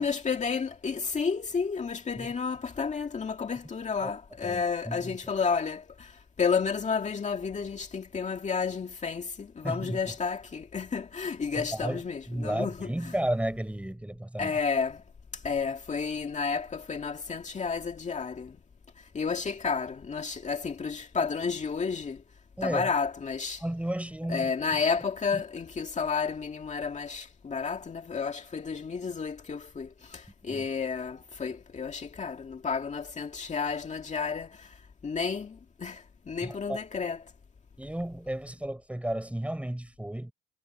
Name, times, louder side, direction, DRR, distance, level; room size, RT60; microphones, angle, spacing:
voice 1, 0.0-13.1 14.4-15.0 15.3-18.6 19.0-22.2 22.6-23.6 24.3-37.2, left 5 dB, 35° left, 2.1 m, -31 dB
voice 2, 4.4-5.1 9.6-10.0 11.6-12.0 12.3-14.5 22.6-22.9 23.6-24.8 25.3-25.4 30.5-30.7 36.4-36.8 37.8-40.3, right 1 dB, 5° right, 5.3 m, -33 dB
cardioid pair, 90°, 20 cm